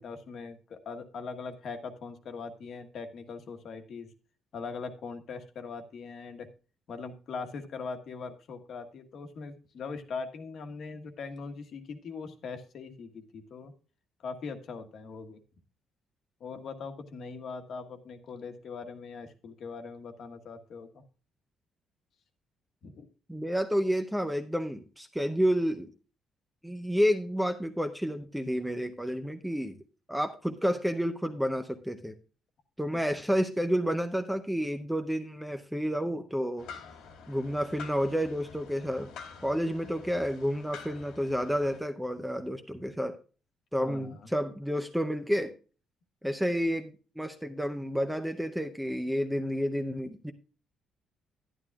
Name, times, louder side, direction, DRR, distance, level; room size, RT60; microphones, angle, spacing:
voice 1, 0.0-4.1 4.5-6.5 6.9-13.7 14.2-15.4 16.4-21.0 22.8-23.1 32.9-33.0 43.8-44.3, left 4 dB, 50° left, 7 dB, 1.3 m, -41 dB
voice 2, 23.3-25.9 26.6-29.8 30.1-32.1 32.8-36.7 37.3-39.1 39.4-43.2 43.7-45.5 46.2-50.3, equal, ahead, 7 dB, 0.6 m, -30 dB
sound 1, 36.6-41.8, left 6 dB, 85° left, 2.6 m, -48 dB
11.5 x 11.0 x 2.3 m, 0.36 s
cardioid pair, 165°, 0 cm